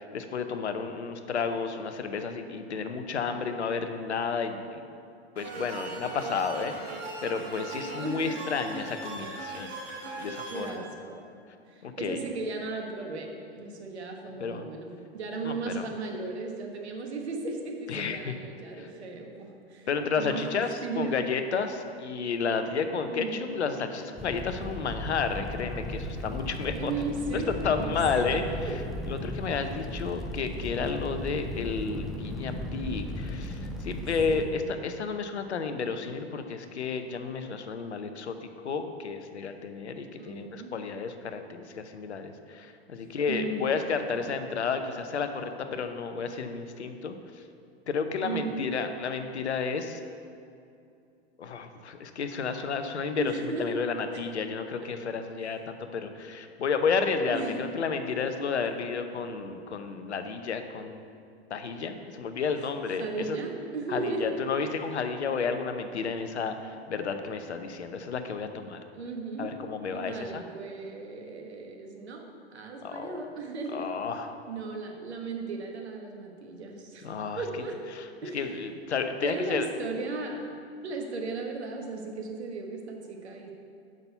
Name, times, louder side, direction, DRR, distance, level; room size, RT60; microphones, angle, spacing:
voice 1, 0.0-4.8 5.4-9.8 10.2-10.8 11.8-12.2 14.4-14.6 15.4-15.9 17.9-18.3 18.8-18.9 19.9-26.9 27.3-28.7 29.1-38.4 38.6-47.2 47.9-50.0 51.4-61.1 61.5-63.4 63.9-68.8 69.4-70.4 72.8-73.2 73.7-74.3 77.0-77.4 78.3-79.7, left 5 dB, 85° left, 7 dB, 0.8 m, -31 dB
sound 1, 5.4-10.7, right 3 dB, 55° right, 2.3 m, -39 dB
voice 2, 7.8-8.4 10.5-11.2 11.7-19.9 20.2-20.5 20.8-21.1 23.1-23.5 26.7-28.3 28.6-28.7 34.3-34.6 40.2-40.7 43.3-43.8 48.2-48.6 53.2-53.8 54.1-54.2 54.8-54.9 57.3-57.5 63.0-64.4 68.9-69.5 69.9-72.2 72.5-74.0 74.5-77.8 78.2-78.6 79.2-80.4 80.8-83.5, right 3 dB, 75° right, 2 dB, 1.4 m, -36 dB
Fire, 24.2-34.5, left 1 dB, ahead, 0.7 m, -36 dB
6.6 x 6.0 x 6.8 m, 2.5 s
hypercardioid pair, 105°, 33 cm